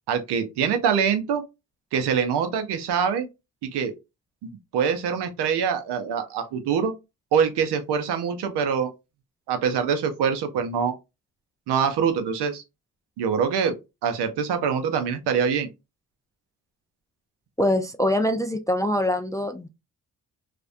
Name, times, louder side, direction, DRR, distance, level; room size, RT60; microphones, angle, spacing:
voice 1, 0.1-1.4 1.9-3.3 3.6-3.9 4.4-6.9 7.3-8.9 9.5-11.0 11.7-12.6 13.2-13.7 14.0-15.7, right 7 dB, 75° right, 0.7 m, -24 dB
voice 2, 17.6-19.7, left 1 dB, 10° left, 0.3 m, -24 dB
2.4 x 2.1 x 2.5 m
supercardioid pair, 45°, 41 cm